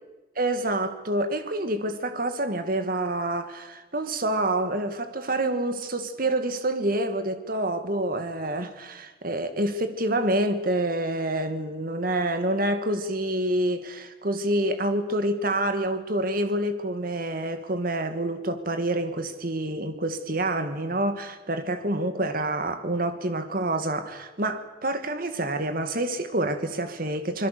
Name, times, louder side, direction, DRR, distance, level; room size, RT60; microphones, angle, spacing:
voice 1, 0.4-27.5, right 1 dB, 50° right, 9 dB, 2.0 m, -27 dB
26.5 x 21.5 x 6.8 m, 1.1 s
head